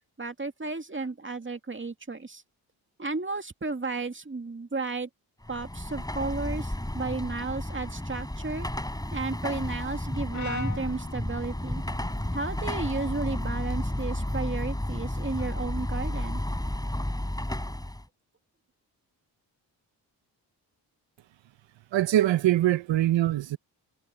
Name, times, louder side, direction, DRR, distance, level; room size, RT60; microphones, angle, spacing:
voice 1, 0.2-2.4 3.0-5.1 5.5-8.7 9.1-11.8 12.3-16.4, right 3 dB, 25° right, 2.3 m, -33 dB
Car passing by / Traffic noise roadway noise / Engine, 5.4-18.1, left 1 dB, 10° left, 7.8 m, -32 dB
Brass instrument, 10.3-14.6, left 3 dB, 40° left, 2.5 m, -43 dB
voice 2, 21.9-23.6, right 13 dB, 80° right, 1.1 m, -23 dB
supercardioid pair, 50°, 44 cm